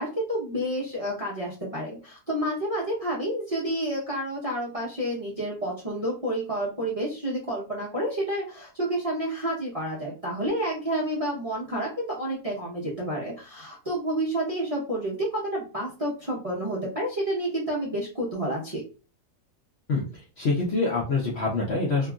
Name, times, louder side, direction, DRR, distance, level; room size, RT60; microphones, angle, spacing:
voice 1, 0.0-18.8, right 1 dB, 30° right, -5 dB, 0.7 m, -29 dB
voice 2, 19.9-22.1, left 3 dB, 55° left, -3 dB, 0.7 m, -26 dB
2.9 x 2.5 x 2.3 m, 0.34 s
omnidirectional pair, 1.7 m